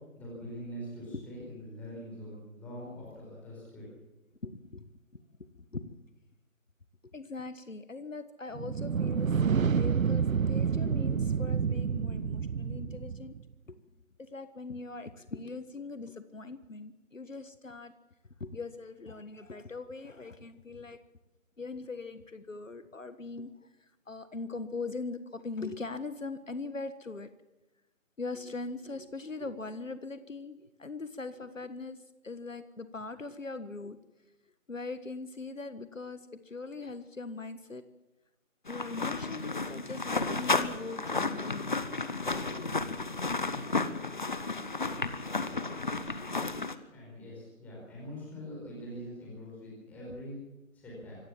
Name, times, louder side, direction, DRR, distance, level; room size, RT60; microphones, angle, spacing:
voice 1, 0.1-3.8 46.9-50.4 50.7-51.2, equal, 5° left, -5 dB, 4.7 m, -43 dB
voice 2, 4.4-6.0 7.0-13.4 13.7-13.8 14.2-17.9 18.4-21.0 21.6-27.3 28.2-32.0 32.2-34.0 34.7-37.8 38.7-41.8, left 3 dB, 65° left, 12 dB, 1.6 m, -41 dB
sound 1, 8.5-13.4, right 6 dB, 75° right, 0.6 m, -29 dB
sound 2, 38.7-46.7, left 3 dB, 35° left, 1.2 m, -32 dB
25.5 x 15.5 x 7.4 m, 1.0 s
figure-of-eight pair, 160°, 41 cm